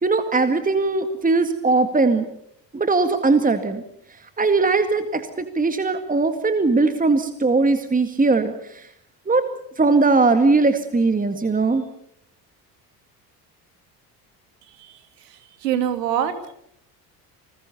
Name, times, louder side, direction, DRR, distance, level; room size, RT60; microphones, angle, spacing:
voice 1, 0.0-2.3 2.7-3.8 4.4-5.2 5.6-8.5 9.3-9.5 9.8-11.8, right 3 dB, 15° right, 9 dB, 2.0 m, -19 dB
voice 2, 14.8-16.5, right 9 dB, 75° right, 10 dB, 2.6 m, -26 dB
29.0 x 20.0 x 6.9 m, 0.71 s
figure-of-eight pair, 55°, 49 cm